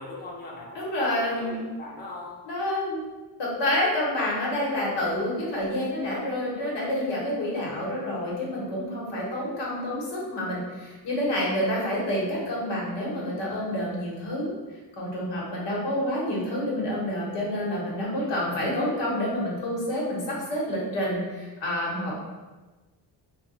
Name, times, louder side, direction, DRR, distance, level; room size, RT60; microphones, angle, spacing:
voice 1, 0.0-2.4 18.1-18.6, left 2 dB, 25° left, -3 dB, 0.5 m, -40 dB
voice 2, 0.7-1.6 2.5-3.0 3.4-14.5 14.9-22.1, left 1 dB, 90° left, -4 dB, 1.1 m, -28 dB
2.3 x 2.2 x 3.9 m, 1.2 s
wide cardioid pair, 125°, 42 cm